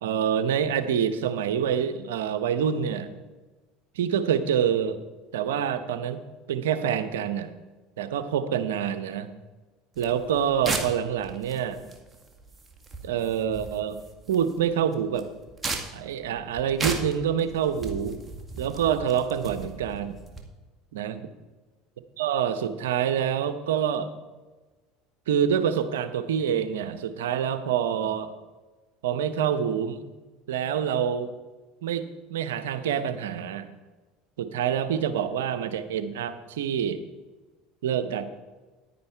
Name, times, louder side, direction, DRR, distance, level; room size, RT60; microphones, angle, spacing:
voice 1, 0.0-3.1 4.0-5.0 5.3-6.2 6.5-7.5 8.0-9.3 10.0-11.8 13.0-14.0 14.3-15.3 15.9-18.2 18.6-20.2 20.9-21.3 22.2-24.1 25.3-28.3 29.0-30.0 30.5-31.3 31.8-33.7 34.4-37.0 37.8-38.2, right 8 dB, 85° right, 11 dB, 0.8 m, -26 dB
sound 1, 10.0-20.4, right 3 dB, 20° right, 1.9 m, -37 dB
10.0 x 9.5 x 4.5 m, 1.2 s
hypercardioid pair, 80°, 0 cm